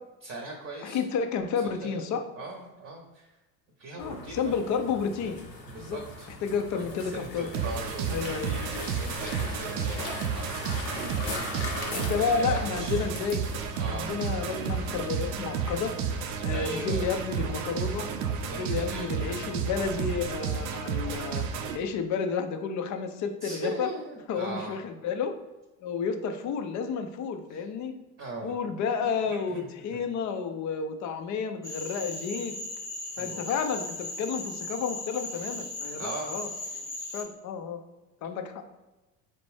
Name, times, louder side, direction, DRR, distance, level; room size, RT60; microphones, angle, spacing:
voice 1, 0.2-1.0 1.6-2.0 2.3-3.3 3.8-4.4 5.7-6.3 6.7-10.5 11.1-13.1 13.8-14.1 16.5-17.1 18.4-19.1 23.4-24.8 27.5-27.7 28.2-28.6 29.0-30.0 33.1-33.4 36.0-36.4, right 2 dB, 25° right, 1 dB, 0.8 m, -40 dB
voice 2, 0.8-2.2 4.0-5.4 5.8-6.0 6.4-7.5 8.1-8.5 11.9-13.4 13.8-15.9 16.4-18.1 18.4-21.4 21.7-23.9 24.3-25.4 25.8-27.9 28.4-32.5 33.2-36.5 37.1-37.8 38.2-38.6, left 6 dB, 40° left, 7 dB, 0.5 m, -31 dB
sound 1, 4.0-20.5, left 2 dB, 90° left, 1.1 m, -41 dB
sound 2, 7.5-21.8, right 6 dB, 70° right, 0.6 m, -32 dB
Cricket / Frog, 31.6-37.2, left 2 dB, 5° left, 1.0 m, -37 dB
4.0 x 2.5 x 3.4 m, 1.1 s
hypercardioid pair, 65°, 49 cm